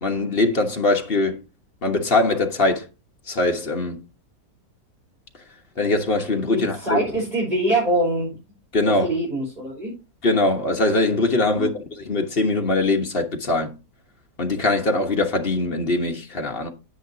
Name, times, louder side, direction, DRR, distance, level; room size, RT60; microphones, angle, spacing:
voice 1, 0.0-1.4 1.8-2.8 3.3-4.0 5.8-7.0 8.7-9.1 10.2-13.7 14.4-16.7, left 2 dB, 35° left, 1.3 m, -22 dB
voice 2, 6.5-8.3 8.8-9.9 11.5-11.7, right 1 dB, 25° right, 5.1 m, -24 dB
9.9 x 8.6 x 2.8 m
omnidirectional pair, 1.8 m